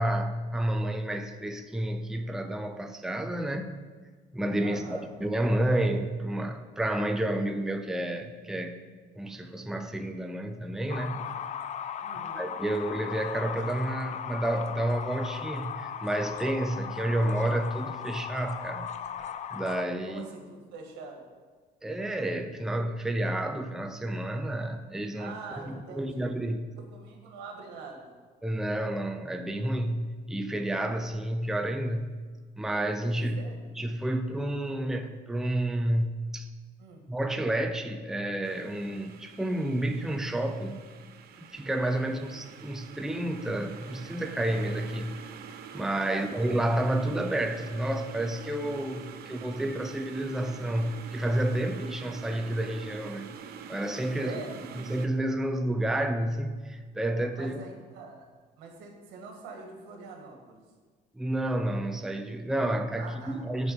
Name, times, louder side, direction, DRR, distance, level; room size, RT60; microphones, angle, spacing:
voice 1, 0.0-3.8 4.3-8.8 9.2-11.2 12.4-18.9 19.5-20.3 21.8-26.7 28.4-32.2 32.6-33.4 33.8-36.5 37.1-40.8 41.4-45.2 45.7-53.4 53.7-54.4 54.9-57.6 61.1-63.7, right 1 dB, 5° right, 5 dB, 0.6 m, -30 dB
voice 2, 4.6-5.1 12.0-12.5 20.0-21.2 25.2-26.3 26.9-28.1 33.3-33.7 36.8-37.1 42.0-42.4 46.0-46.3 54.2-54.5 57.3-58.3 58.6-60.6 63.0-63.4, right 4 dB, 90° right, 2 dB, 1.8 m, -44 dB
sound 1, 10.9-19.9, left 8 dB, 45° left, 0.4 m, -37 dB
sound 2, 38.4-55.1, right 7 dB, 65° right, 0.7 m, -46 dB
8.1 x 4.8 x 7.0 m, 1.5 s
cardioid pair, 110°, 17 cm